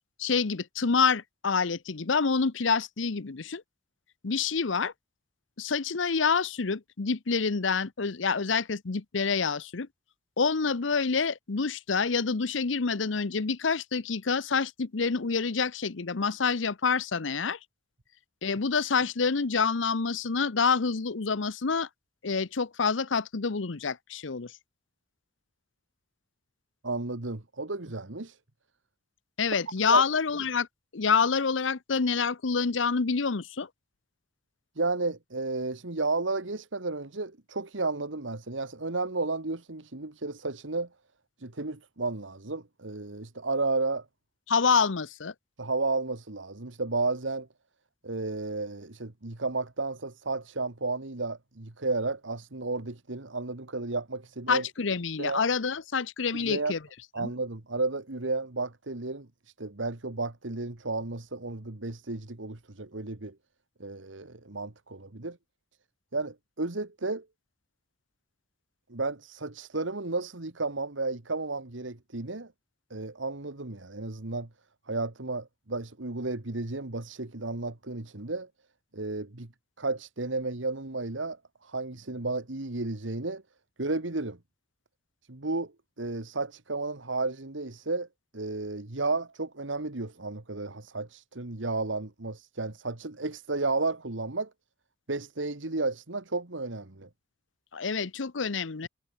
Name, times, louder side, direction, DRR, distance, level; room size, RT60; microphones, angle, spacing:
voice 1, 0.2-3.6 4.2-4.9 5.6-9.9 10.4-17.6 18.4-21.9 22.2-24.5 29.4-30.7 30.9-33.7 44.5-45.3 54.5-56.8 57.2-57.3 97.7-98.9, left 5 dB, 85° left, 0.8 m, -27 dB
voice 2, 26.8-28.4 29.9-30.0 34.8-40.9 41.4-44.1 45.6-47.5 48.0-54.6 55.2-55.4 56.3-56.7 57.1-59.3 59.6-63.4 63.8-65.4 66.1-67.3 68.9-72.5 72.9-74.5 74.9-78.5 78.9-79.5 79.8-81.4 81.6-83.4 83.8-84.4 85.3-85.7 86.0-88.1 88.3-94.5 95.1-97.1, right 3 dB, 85° right, 1.9 m, -32 dB
head